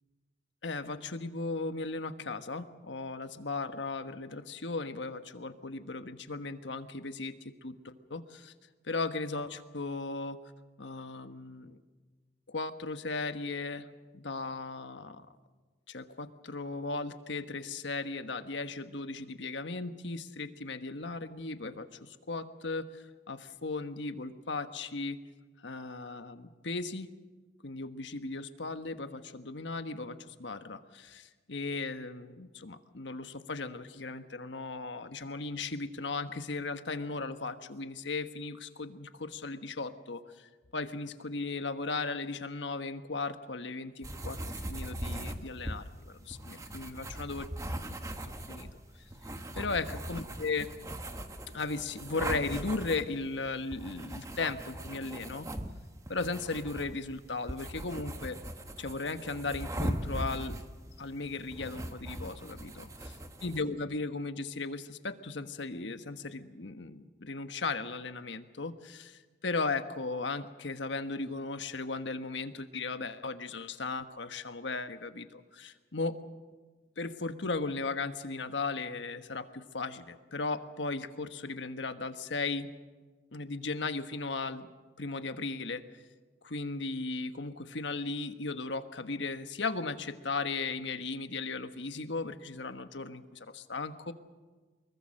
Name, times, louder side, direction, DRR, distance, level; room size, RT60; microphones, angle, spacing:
voice 1, 0.6-7.3 7.6-8.5 8.8-10.4 10.8-11.8 12.5-13.9 14.1-15.3 15.9-25.2 25.6-27.1 27.6-44.4 44.7-47.5 48.2-48.7 49.5-50.7 51.5-55.5 56.1-58.4 58.8-60.6 61.0-62.9 63.4-76.2 77.0-82.7 83.3-84.7 85.0-85.8 86.4-94.1, left 3 dB, 80° left, 9 dB, 1.3 m, -36 dB
sound 1, 44.0-63.6, right 1 dB, 15° right, 1.2 m, -40 dB
24.5 x 22.0 x 6.5 m, 1.3 s
head